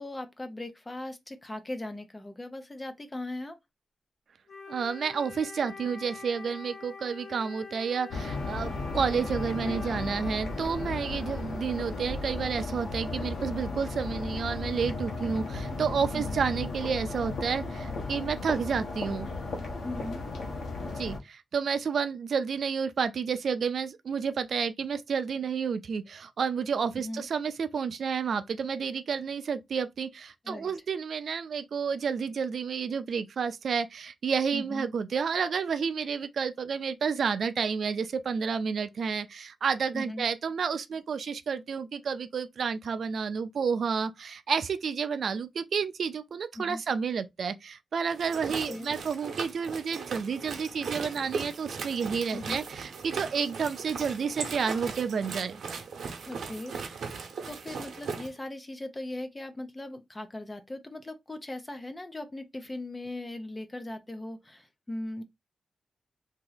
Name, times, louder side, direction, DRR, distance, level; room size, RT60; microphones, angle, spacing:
voice 1, 0.0-3.6 16.1-16.4 19.8-20.2 26.9-27.2 30.4-30.7 34.5-34.9 39.9-40.3 46.5-46.8 48.7-48.9 52.3-52.6 56.3-65.2, left 1 dB, 15° left, 0.5 m, -39 dB
Wind instrument woodwind instrument, 4.5-12.2, left 4 dB, 50° left, 0.8 m, -45 dB
voice 2, 4.7-19.3 20.9-55.6, right 6 dB, 60° right, 0.4 m, -30 dB
sound 1, 8.1-21.2, left 3 dB, 90° left, 1.0 m, -35 dB
sound 2, 48.1-58.3, right 5 dB, 75° right, 0.8 m, -38 dB
2.9 x 2.8 x 3.9 m
wide cardioid pair, 165°, 0 cm